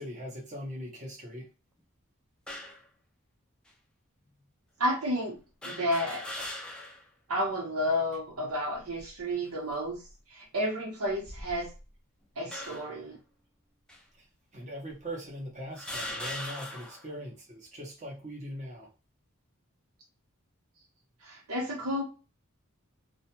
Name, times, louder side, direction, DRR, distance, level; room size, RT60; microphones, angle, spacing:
voice 1, 0.0-1.5 14.2-14.3 14.5-18.9, equal, 35° right, -2 dB, 0.8 m, -41 dB
sound 1, 2.5-2.8 3.7-3.8 5.6-7.1 7.5-7.6 8.7-9.2 9.9-10.1 11.1-11.9 12.5-13.0 13.9-14.0 14.9-15.0 15.7-17.1, left 1 dB, 5° left, 0.3 m, -40 dB
voice 2, 4.8-5.4 5.6-6.2 7.3-10.0 10.3-11.7 12.4-13.2 21.2-22.0, equal, 80° right, 0 dB, 0.9 m, -31 dB
2.4 x 2.1 x 2.8 m, 0.31 s
head